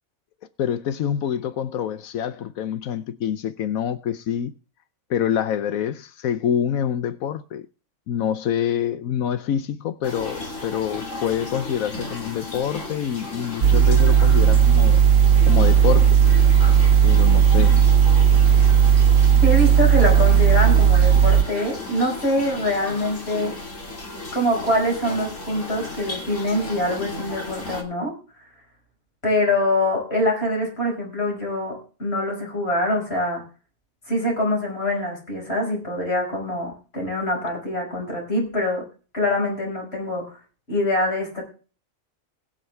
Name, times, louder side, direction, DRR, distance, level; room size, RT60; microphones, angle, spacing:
voice 1, 0.6-4.5 5.1-7.7 8.1-15.0 15.5-16.2 17.0-17.8, left 9 dB, 85° left, 1.2 m, -26 dB
sound 1, 10.0-27.8, left 2 dB, 65° left, 2.6 m, -35 dB
sound 2, 13.6-21.4, right 8 dB, 75° right, 1.1 m, -15 dB
voice 2, 19.4-23.5 24.3-28.1 29.2-33.4 34.1-38.8 39.1-40.4 40.7-41.4, left 1 dB, 50° left, 5.9 m, -24 dB
21.0 x 7.5 x 3.4 m
omnidirectional pair, 1.4 m